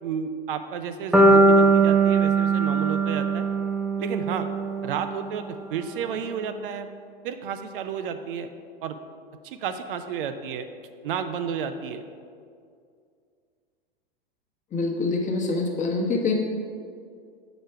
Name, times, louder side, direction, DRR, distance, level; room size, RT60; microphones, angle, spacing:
voice 1, 0.0-3.5 4.0-4.5 4.8-6.9 7.2-8.5 8.8-9.0 9.4-10.7 11.0-12.0, right 7 dB, 65° right, 9 dB, 0.5 m, -31 dB
sound 1, 1.1-5.2, right 3 dB, ahead, 0.4 m, -20 dB
voice 2, 14.7-16.3, left 3 dB, 25° left, 0 dB, 1.1 m, -25 dB
6.2 x 5.0 x 4.6 m, 2.3 s
hypercardioid pair, 100°, 29 cm